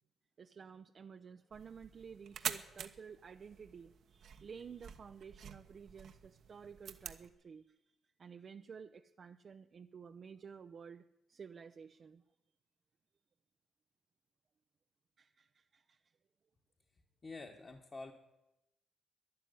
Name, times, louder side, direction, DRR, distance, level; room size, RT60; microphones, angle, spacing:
voice 1, 0.4-7.8 8.2-12.2 15.2-16.0, right 6 dB, 45° right, 7 dB, 0.5 m, -52 dB
sound 1, 1.5-7.3, right 8 dB, 65° right, 1.1 m, -47 dB
voice 2, 17.2-18.1, left 3 dB, 30° left, 1 dB, 1.5 m, -47 dB
12.5 x 10.5 x 9.6 m, 0.94 s
cardioid pair, 90°, 0 cm